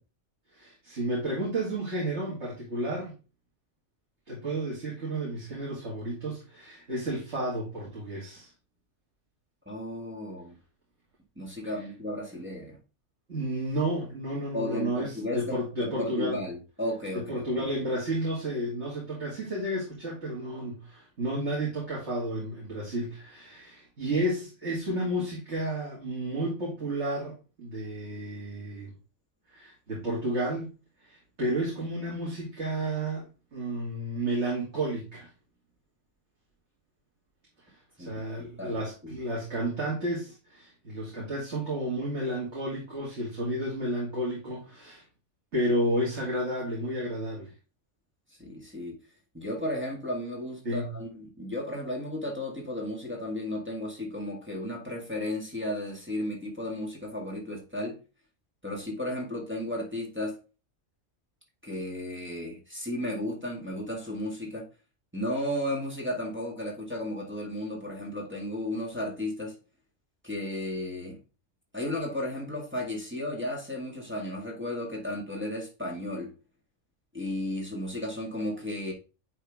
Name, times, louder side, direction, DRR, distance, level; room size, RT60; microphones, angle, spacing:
voice 1, 0.5-3.1 4.3-8.5 13.3-16.4 17.1-28.9 29.5-30.7 31.0-33.3 33.5-35.3 38.0-45.0 45.5-47.5 50.6-50.9, right 1 dB, 65° right, 2.6 m, -31 dB
voice 2, 9.7-10.6 11.4-12.8 14.5-17.7 38.0-39.2 48.4-49.0 49.3-58.0 58.6-60.4 61.6-64.7 65.1-69.6 70.2-71.2 71.7-76.3 77.1-78.9, left 1 dB, 10° right, 1.8 m, -34 dB
10.0 x 3.7 x 3.6 m
omnidirectional pair, 1.3 m